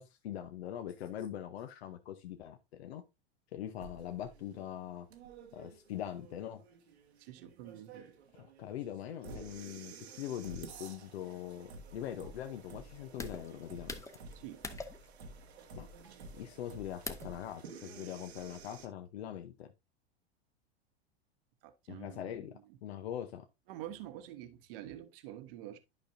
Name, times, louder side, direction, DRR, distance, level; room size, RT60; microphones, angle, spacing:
voice 1, 0.0-3.0 3.5-5.1 5.5-6.6 8.3-14.0 15.7-15.9 16.3-19.7 21.9-23.5, left 10 dB, 75° left, 0.8 m, -42 dB
sound 1, 3.8-18.9, right 3 dB, 85° right, 1.6 m, -51 dB
voice 2, 7.2-8.1 14.3-14.6 21.6-22.8 23.7-25.8, right 12 dB, 60° right, 1.1 m, -47 dB
sound 2, 11.5-17.4, left 3 dB, 10° left, 0.8 m, -47 dB
11.5 x 5.2 x 2.6 m
hypercardioid pair, 100°, 32 cm